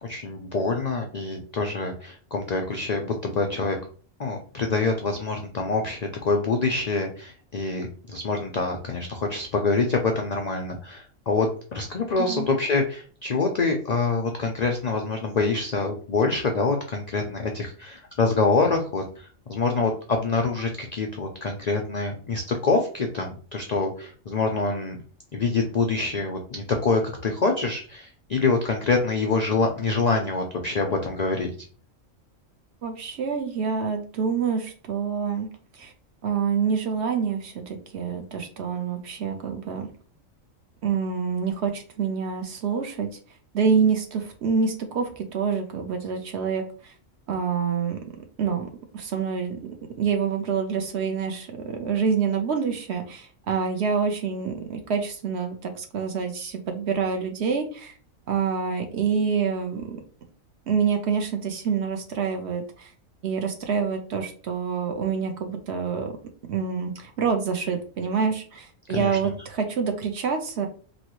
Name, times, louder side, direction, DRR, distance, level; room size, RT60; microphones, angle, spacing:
voice 1, 0.0-3.8 4.2-25.0 25.3-31.5 68.9-69.2, left 3 dB, 80° left, 3 dB, 0.3 m, -25 dB
voice 2, 32.8-35.5 35.7-35.9 36.2-39.9 40.8-43.1 43.5-46.9 47.3-49.6 50.0-57.9 58.3-60.0 60.7-62.9 63.2-66.2 66.5-70.7, right 6 dB, 60° right, 4 dB, 0.8 m, -27 dB
3.1 x 2.7 x 2.9 m, 0.42 s
omnidirectional pair, 1.4 m